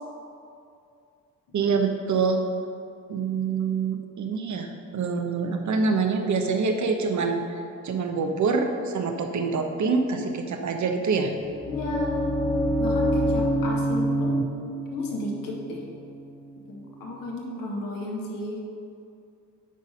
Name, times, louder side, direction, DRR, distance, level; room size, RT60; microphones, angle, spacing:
voice 1, 1.5-2.4 3.1-7.6 7.8-11.4, right 4 dB, 55° right, 5 dB, 1.1 m, -25 dB
sound 1, 11.3-17.2, equal, 5° left, 0.8 m, -27 dB
voice 2, 11.7-12.3 12.8-14.3 14.9-15.8 16.7-18.6, left 2 dB, 70° left, -2 dB, 1.8 m, -33 dB
10.5 x 4.1 x 5.3 m, 2.5 s
supercardioid pair, 55°, 36 cm